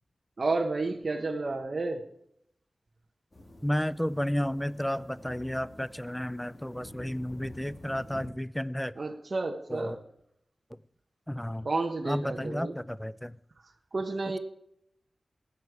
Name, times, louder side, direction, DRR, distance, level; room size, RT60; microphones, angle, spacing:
voice 1, 0.4-2.0 9.0-10.0 11.6-12.7 13.9-14.4, right 3 dB, 50° right, 3 dB, 1.0 m, -31 dB
sound 1, 3.3-8.3, left 1 dB, 40° left, 2.4 m, -49 dB
voice 2, 3.6-9.0 9.7-10.0 10.7-10.8 11.3-11.7 12.0-13.4, equal, 5° left, 18 dB, 0.4 m, -32 dB
20.5 x 8.3 x 4.8 m, 0.75 s
wide cardioid pair, 90°, 0 cm